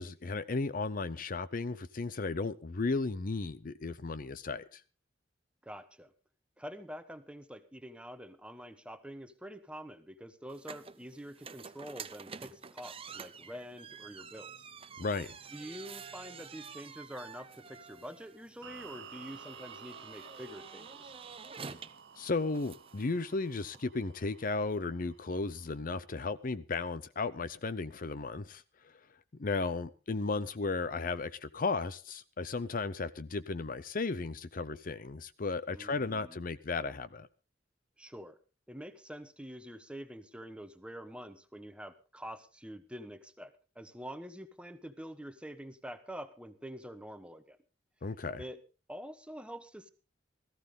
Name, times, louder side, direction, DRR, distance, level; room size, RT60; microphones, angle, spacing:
voice 1, 0.0-4.8 15.0-15.4 22.2-28.6 29.4-37.3 48.0-48.4, left 3 dB, 50° left, 0.6 m, -35 dB
voice 2, 5.6-6.1 6.6-14.7 15.5-21.1 35.7-36.4 38.0-38.4 38.7-47.6 48.4-48.6 48.9-49.9, equal, 5° right, 1.1 m, -46 dB
sound 1, 10.5-23.8, right 6 dB, 30° right, 0.8 m, -49 dB
sound 2, 18.6-25.8, right 6 dB, 75° right, 0.9 m, -53 dB
17.0 x 14.5 x 3.7 m
head